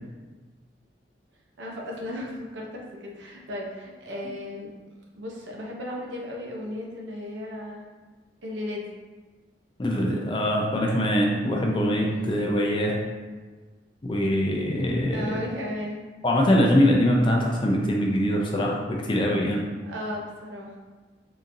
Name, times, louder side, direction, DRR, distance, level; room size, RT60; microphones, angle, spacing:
voice 1, 1.6-4.7 5.1-7.8 8.4-8.9 11.8-12.4 15.1-16.0 19.8-20.7, left 1 dB, 80° right, -1 dB, 0.7 m, -35 dB
voice 2, 9.8-13.0 14.0-15.3 16.2-19.6, equal, 25° left, -1 dB, 0.4 m, -23 dB
3.8 x 2.8 x 2.6 m, 1.3 s
head